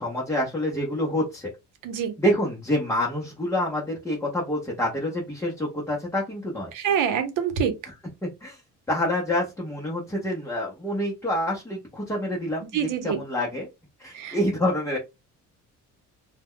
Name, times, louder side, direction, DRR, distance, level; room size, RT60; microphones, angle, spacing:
voice 1, 0.0-1.5 2.2-6.7 8.4-8.6 8.9-12.7 13.0-13.7 14.0-15.0, left 1 dB, 10° left, 0.6 m, -27 dB
voice 2, 1.8-2.1 6.7-7.7 12.7-13.2 14.1-14.4, right 7 dB, 85° right, 0.8 m, -26 dB
2.2 x 2.1 x 3.5 m
cardioid pair, 150°, 31 cm